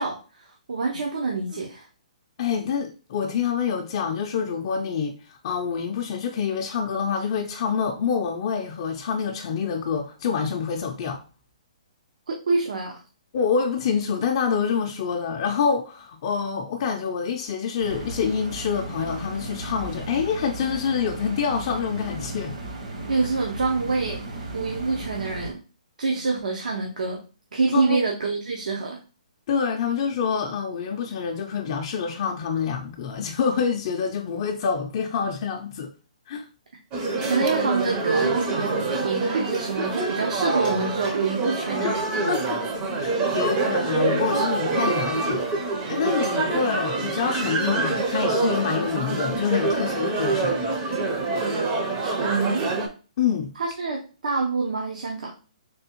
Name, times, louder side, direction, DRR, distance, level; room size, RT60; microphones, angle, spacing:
voice 1, 0.0-1.9 12.3-13.0 23.1-24.2 24.5-25.6 26.0-27.2 27.5-29.0 37.3-42.0 52.0-52.8 53.6-55.3, right 4 dB, 80° right, 0.7 m, -26 dB
voice 2, 2.4-11.2 13.3-22.5 27.7-28.0 29.5-35.9 36.3-36.5 41.8-42.0 42.3-42.6 43.0-45.4 45.9-50.5 53.2-53.5, left 6 dB, 40° left, 0.4 m, -26 dB
sound 1, 17.8-25.5, right 2 dB, 60° right, 1.1 m, -35 dB
sound 2, 36.9-52.9, right 3 dB, 25° right, 0.5 m, -26 dB
3.4 x 3.4 x 2.9 m
hypercardioid pair, 160°, 4 cm